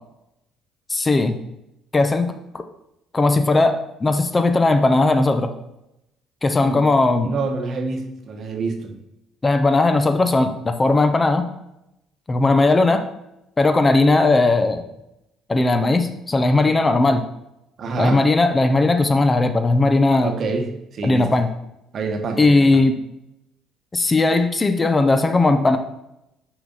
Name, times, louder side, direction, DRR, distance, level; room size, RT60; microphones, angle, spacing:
voice 1, 0.9-1.3 1.9-2.3 3.1-5.5 6.4-7.3 9.4-11.4 12.3-13.0 13.6-14.8 15.5-17.2 18.0-20.4 21.0-21.5 22.4-23.0 23.9-25.8, left 2 dB, 25° left, 8 dB, 0.7 m, -17 dB
voice 2, 7.2-9.0 17.8-18.2 20.2-21.3 21.9-22.8, right 3 dB, 55° right, 4 dB, 1.1 m, -27 dB
5.9 x 4.9 x 4.1 m, 0.86 s
supercardioid pair, 65°, 0 cm